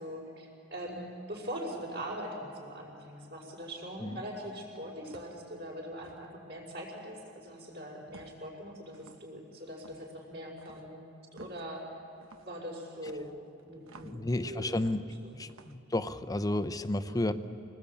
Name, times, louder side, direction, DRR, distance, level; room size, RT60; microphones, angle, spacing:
voice 1, 0.0-11.9 12.4-13.3 13.6-14.9 15.2-15.5 17.0-17.3, equal, 60° right, -8 dB, 5.2 m, -42 dB
sound 1, 4.3-4.6 5.1-5.4 6.0-6.3 8.1-8.5 8.9-9.3 9.8-10.1 10.6-10.9 11.4-11.7 12.2-12.5 13.1-14.2 14.7-15.2 15.5-15.8, right 3 dB, 85° right, 1.1 m, -55 dB
voice 2, 14.0-15.0 15.3-17.3, left 1 dB, 20° left, 11 dB, 0.6 m, -32 dB
25.5 x 19.0 x 8.5 m, 2.6 s
head